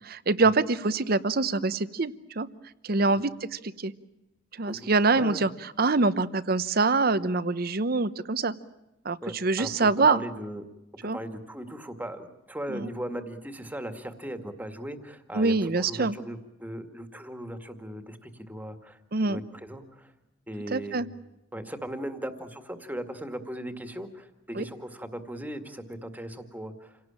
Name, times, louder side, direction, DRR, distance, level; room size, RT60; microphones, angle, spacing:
voice 1, 0.1-2.5 2.8-3.9 4.6-5.5 5.8-8.5 9.0-10.2 11.0-11.2 12.7-12.9 15.3-16.2 19.1-19.4 20.7-21.1 24.6-24.7, right 3 dB, 55° right, 15 dB, 0.9 m, -25 dB
voice 2, 5.1-5.4 7.2-7.3 9.2-10.7 11.1-19.0 19.2-20.1 20.5-21.0 21.5-27.0, right 1 dB, 10° right, 8 dB, 2.0 m, -38 dB
28.0 x 18.0 x 8.9 m, 0.93 s
head